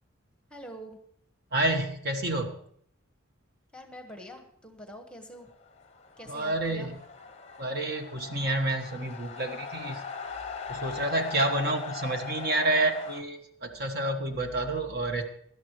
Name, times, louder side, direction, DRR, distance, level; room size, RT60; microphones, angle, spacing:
voice 1, 0.5-1.0 3.7-5.5 6.2-6.9 10.9-11.0, equal, 5° left, 4 dB, 1.3 m, -45 dB
voice 2, 1.5-2.6 6.3-7.0 7.6-10.0 10.7-15.2, right 2 dB, 45° right, 5 dB, 1.3 m, -29 dB
sound 1, 5.5-13.2, left 5 dB, 30° left, 0.7 m, -40 dB
18.5 x 12.0 x 3.1 m, 0.65 s
head